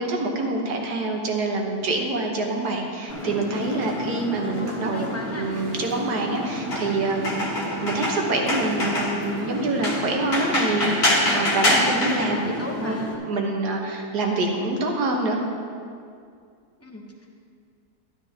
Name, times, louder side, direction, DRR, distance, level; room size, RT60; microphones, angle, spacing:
voice 1, 0.0-5.1 5.4-7.4 7.8-12.4 12.8-15.4, right 2 dB, 75° right, 1 dB, 1.8 m, -26 dB
sound 1, 3.1-13.1, left 1 dB, 40° left, 1.5 m, -27 dB
voice 2, 4.4-5.5 11.8-13.1 16.8-17.3, left 1 dB, 10° left, 0 dB, 0.8 m, -37 dB
12.5 x 12.0 x 2.9 m, 2.3 s
omnidirectional pair, 1.7 m